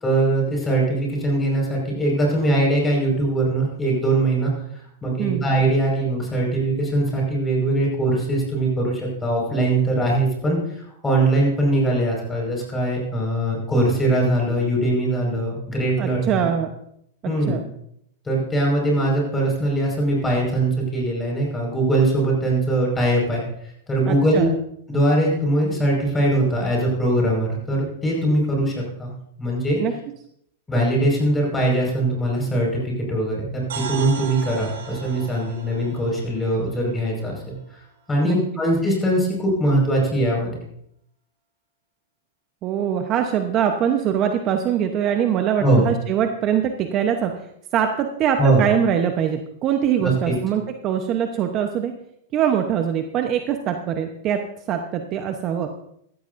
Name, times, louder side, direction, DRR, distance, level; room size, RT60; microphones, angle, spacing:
voice 1, 0.0-4.5 5.0-10.6 11.0-16.5 17.2-17.6 18.2-23.4 23.9-24.5 24.9-29.1 29.4-29.8 30.7-37.5 38.1-40.5 45.6-45.8 48.4-48.6 50.0-50.4, right 1 dB, 10° left, -2 dB, 5.2 m, -21 dB
voice 2, 16.0-16.7 17.2-17.6 24.1-24.5 29.8-29.9 38.2-38.4 42.6-47.3 47.7-51.9 52.3-54.4 54.7-55.7, right 9 dB, 35° right, 6 dB, 0.9 m, -23 dB
sound 1, 33.7-37.6, right 6 dB, 85° right, 3.8 m, -37 dB
15.5 x 13.5 x 2.6 m, 0.72 s
hypercardioid pair, 140°, 0 cm